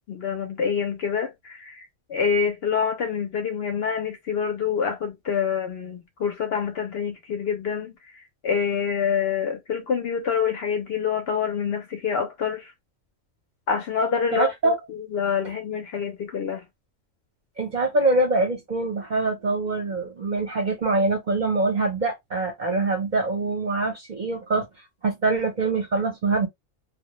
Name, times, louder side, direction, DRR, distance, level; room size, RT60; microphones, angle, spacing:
voice 1, 0.1-7.9 8.4-12.7 13.7-16.6, left 6 dB, 65° left, 0.7 m, -26 dB
voice 2, 14.3-14.8 17.6-24.7 25.0-26.5, right 3 dB, 45° right, 0.7 m, -24 dB
2.1 x 2.1 x 2.9 m
omnidirectional pair, 1.4 m